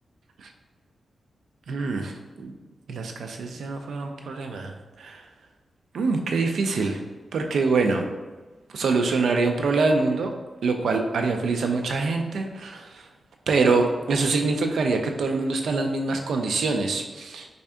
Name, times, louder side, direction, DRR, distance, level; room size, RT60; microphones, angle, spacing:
voice 1, 1.7-2.5 2.9-4.7 5.0-5.2 5.9-7.0 7.3-8.1 8.7-10.3 10.6-13.0 13.5-17.5, right 3 dB, 85° right, 4 dB, 0.4 m, -25 dB
3.3 x 2.7 x 3.4 m, 1.2 s
wide cardioid pair, 160°, 0 cm